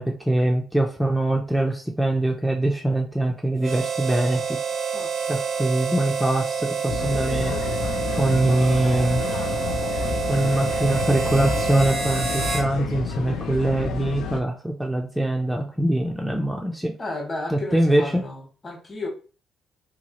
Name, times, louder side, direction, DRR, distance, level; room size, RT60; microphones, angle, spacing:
voice 1, 0.0-4.6 5.3-7.6 8.2-9.2 10.3-16.9 17.5-18.2, right 1 dB, 5° right, 1 dB, 0.4 m, -23 dB
Harmonica, 3.6-12.7, right 6 dB, 55° right, 0.6 m, -27 dB
sound 1, 6.9-14.4, left 6 dB, 80° left, 0.4 m, -30 dB
voice 2, 17.0-19.1, left 2 dB, 35° left, 2 dB, 1.0 m, -33 dB
2.8 x 2.3 x 2.9 m, 0.38 s
cardioid pair, 90°, 0 cm